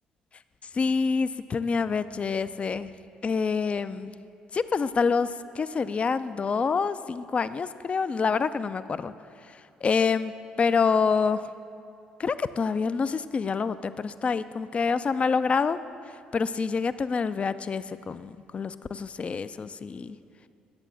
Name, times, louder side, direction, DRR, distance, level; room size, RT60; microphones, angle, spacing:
voice 1, 0.7-2.9 3.2-4.1 4.5-9.1 9.5-10.3 10.6-11.5 12.2-15.8 16.3-20.2, left 5 dB, 35° left, 13 dB, 0.4 m, -27 dB
11.5 x 8.0 x 7.3 m, 2.6 s
hypercardioid pair, 55°, 4 cm